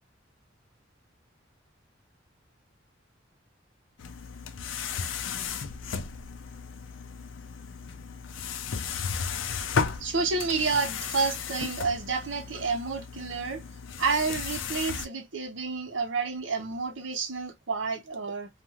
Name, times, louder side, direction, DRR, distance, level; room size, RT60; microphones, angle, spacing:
sound 1, 4.0-15.1, left 6 dB, 75° left, 0.5 m, -34 dB
voice 1, 10.0-13.6 14.0-18.5, right 4 dB, 70° right, 0.9 m, -30 dB
2.5 x 2.4 x 2.9 m
head